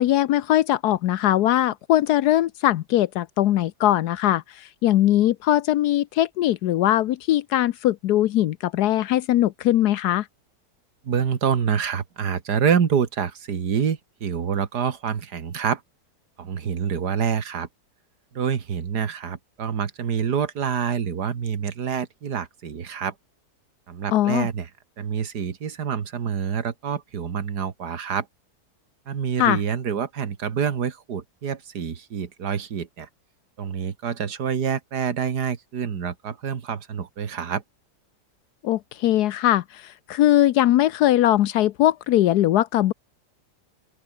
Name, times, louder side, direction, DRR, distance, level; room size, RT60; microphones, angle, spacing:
voice 1, 0.0-10.2 24.1-24.5 29.4-29.6 38.6-42.9, left 13 dB, 80° left, 1.2 m, -20 dB
voice 2, 11.0-15.8 16.4-17.7 18.3-23.1 23.9-24.7 25.0-28.3 29.1-33.1 33.6-37.6, right 7 dB, 90° right, 2.2 m, -27 dB
open air
omnidirectional pair, 1.7 m